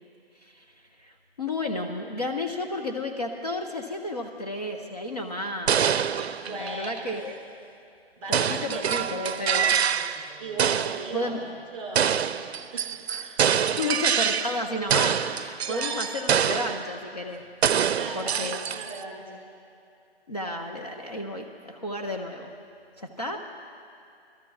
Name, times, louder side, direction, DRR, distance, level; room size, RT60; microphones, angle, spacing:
voice 1, 0.4-5.8 6.5-7.4 8.3-9.9 11.1-11.4 13.1-13.4 13.8-17.4 18.1-18.6 20.3-22.5 23.0-23.4, left 2 dB, 40° left, 1 dB, 0.6 m, -32 dB
sound 1, 5.7-7.1 8.3-10.3 10.6-11.1 12.0-14.6 14.9-16.9 17.6-19.0, right 8 dB, 75° right, 0.5 m, -25 dB
voice 2, 6.4-7.1 8.2-9.4 10.4-12.2 12.7-12.9 13.2-13.4 13.8-14.0 15.7-16.1 16.7-16.8 17.9-19.4, right 3 dB, 30° right, 0 dB, 2.1 m, -37 dB
24.0 x 13.5 x 2.3 m, 2.5 s
hypercardioid pair, 175°, 32 cm